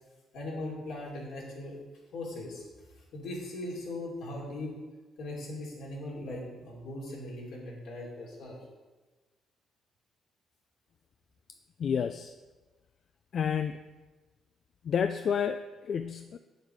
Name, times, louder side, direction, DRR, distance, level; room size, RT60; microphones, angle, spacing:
voice 1, 0.3-1.7 2.1-2.6 3.1-4.7 5.2-8.6, left 1 dB, 80° left, -4 dB, 3.0 m, -39 dB
voice 2, 11.8-12.3 13.3-13.8 14.8-16.4, left 7 dB, 60° left, 10 dB, 0.3 m, -30 dB
8.2 x 6.6 x 4.6 m, 1.2 s
cardioid pair, 90°, 0 cm